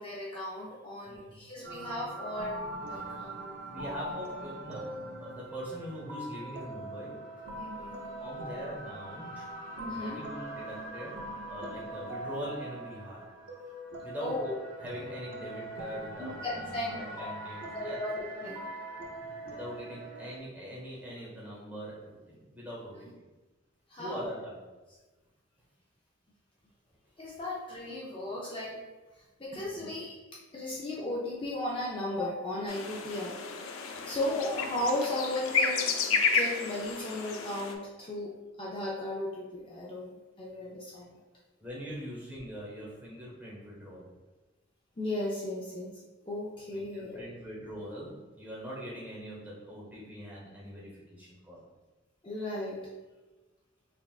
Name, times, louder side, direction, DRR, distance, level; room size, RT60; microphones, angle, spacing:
voice 1, 0.0-3.5 3.8-3.9 7.6-8.0 9.8-10.2 14.2-14.5 16.2-17.3 17.7-18.6 23.9-24.3 27.2-28.8 29.4-30.2 30.5-33.4 34.0-38.3 38.6-41.2 45.0-45.9 46.3-47.2 52.2-52.8, left 1 dB, 25° left, -6 dB, 0.5 m, -36 dB
voice 2, 1.1-1.4 3.7-4.9 5.2-7.2 8.2-9.5 9.8-11.2 11.5-13.2 14.0-14.5 14.8-18.0 19.5-23.2 24.0-24.6 29.6-29.9 33.9-34.1 41.6-44.1 46.7-51.6, equal, 10° right, -5 dB, 1.0 m, -42 dB
sound 1, 1.6-20.4, right 1 dB, 65° right, 0.6 m, -42 dB
sound 2, 32.7-37.7, left 5 dB, 85° left, 0.4 m, -31 dB
5.8 x 2.4 x 2.4 m, 1.2 s
head